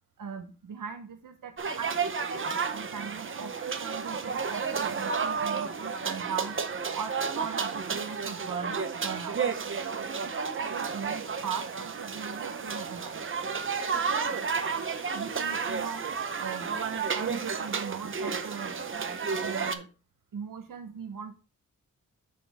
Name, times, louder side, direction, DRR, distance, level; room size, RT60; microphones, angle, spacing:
voice 1, 0.2-1.9 2.3-2.5 2.7-6.6 6.9-9.4 9.8-13.2 14.1-14.3 15.1-16.0 16.4-16.7 17.1-18.7 19.4-19.9 20.3-21.4, right 6 dB, 85° right, 6 dB, 1.0 m, -39 dB
sound 1, 1.6-19.7, right 5 dB, 40° right, 0.7 m, -32 dB
7.5 x 6.2 x 3.5 m, 0.33 s
wide cardioid pair, 165°, 32 cm